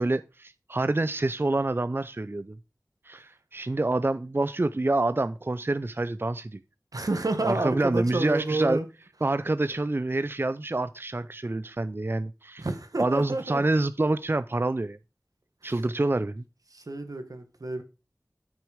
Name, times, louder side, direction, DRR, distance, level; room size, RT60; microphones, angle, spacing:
voice 1, 0.0-2.6 3.1-6.6 7.4-8.8 9.2-12.7 13.0-15.0 15.6-16.4, right 2 dB, 40° right, 0.4 m, -27 dB
voice 2, 6.9-8.9 12.6-13.6 15.6-15.8 16.7-17.8, right 2 dB, 90° right, 1.5 m, -30 dB
8.6 x 6.3 x 4.9 m
wide cardioid pair, 45°, 6 cm